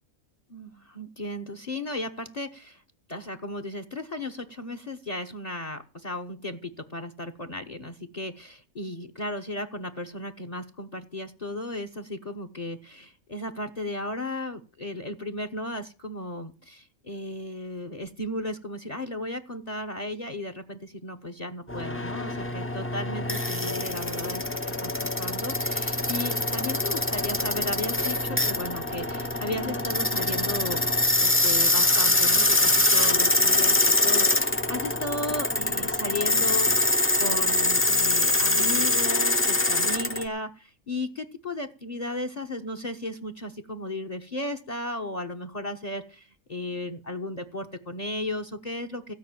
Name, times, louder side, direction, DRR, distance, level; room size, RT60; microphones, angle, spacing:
voice 1, 0.5-2.8 3.1-30.8 31.2-49.1, left 1 dB, 30° left, 10 dB, 1.2 m, -35 dB
sound 1, 21.7-40.2, left 1 dB, 10° left, 0.8 m, -24 dB
16.0 x 5.4 x 9.1 m, 0.37 s
omnidirectional pair, 1.4 m